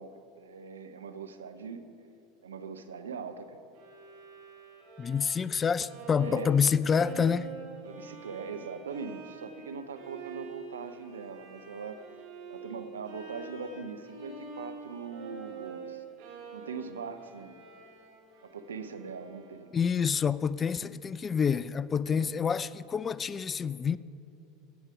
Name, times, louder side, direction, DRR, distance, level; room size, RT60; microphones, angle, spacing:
voice 1, 0.0-1.8 2.4-3.6 6.2-6.6 7.8-12.0 12.5-16.0 16.5-17.6 18.4-19.7 22.1-22.3, right 5 dB, 80° right, 0.7 m, -41 dB
Bowed string instrument, 3.7-19.8, right 5 dB, 60° right, 2.3 m, -46 dB
voice 2, 5.0-7.5 19.7-24.0, left 6 dB, 25° left, 0.3 m, -27 dB
16.0 x 8.1 x 4.8 m
figure-of-eight pair, 75°, 0 cm